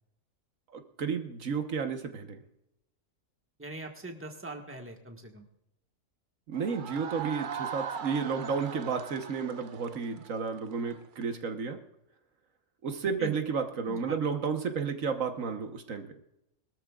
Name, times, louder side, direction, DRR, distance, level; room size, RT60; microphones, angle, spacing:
voice 1, 0.7-2.4 6.5-11.8 12.8-16.1, right 5 dB, 75° right, 6 dB, 1.5 m, -32 dB
voice 2, 3.6-5.5 13.2-13.4 13.9-14.2, right 2 dB, 10° right, 3 dB, 1.5 m, -41 dB
sound 1, 6.5-11.3, right 7 dB, 50° right, 0.6 m, -40 dB
22.0 x 13.0 x 2.4 m, 0.85 s
omnidirectional pair, 1.4 m